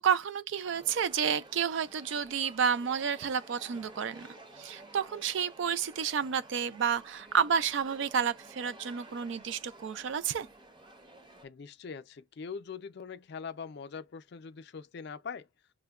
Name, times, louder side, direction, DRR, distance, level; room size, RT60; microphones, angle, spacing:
voice 1, 0.0-4.3 4.6-10.5, right 7 dB, 70° right, 0.4 m, -30 dB
sound 1, 0.6-11.5, right 2 dB, 25° right, 0.7 m, -52 dB
voice 2, 11.4-15.5, left 6 dB, 55° left, 0.4 m, -42 dB
6.1 x 2.1 x 2.3 m
head